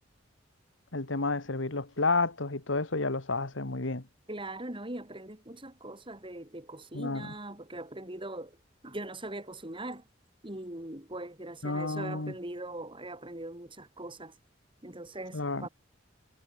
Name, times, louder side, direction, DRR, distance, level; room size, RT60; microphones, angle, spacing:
voice 1, 0.9-4.0 6.9-7.3 11.6-12.3 15.3-15.7, left 3 dB, 90° left, 2.0 m, -31 dB
voice 2, 4.3-8.6 8.8-10.0 10.4-14.4 14.8-15.7, right 1 dB, 25° right, 5.5 m, -41 dB
head